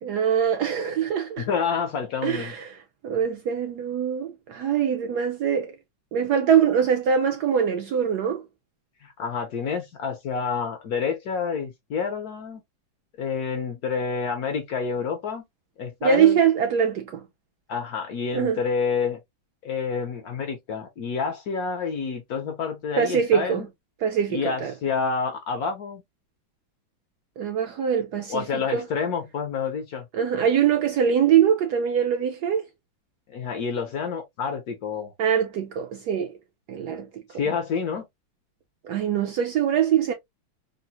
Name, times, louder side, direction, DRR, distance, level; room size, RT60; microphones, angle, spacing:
voice 1, 0.0-1.5 2.2-2.7 3.0-5.7 6.1-8.4 16.0-17.2 18.3-18.6 23.0-23.7 24.0-24.7 27.4-28.4 28.7-28.8 30.1-32.7 35.2-36.4 36.7-37.1 38.8-40.1, right 8 dB, 75° right, 0.9 m, -23 dB
voice 2, 1.4-2.5 9.0-12.6 13.2-15.4 15.8-16.4 17.7-19.2 19.6-23.7 24.3-26.0 28.3-30.1 33.3-35.1 37.4-38.1, left 5 dB, 65° left, 1.0 m, -28 dB
3.7 x 2.0 x 2.7 m
omnidirectional pair, 2.1 m